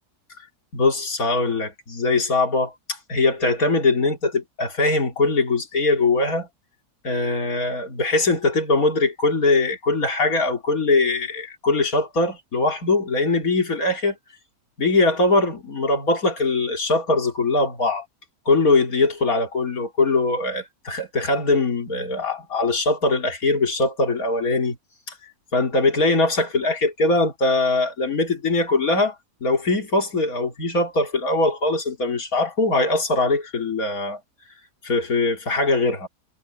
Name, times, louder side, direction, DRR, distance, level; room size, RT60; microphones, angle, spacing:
voice 1, 0.7-6.5 7.0-14.2 14.8-18.0 18.5-24.8 25.5-29.2 29.4-34.2 34.8-36.1, left 2 dB, 60° left, 3.7 m, -21 dB
omnidirectional pair, 1.7 m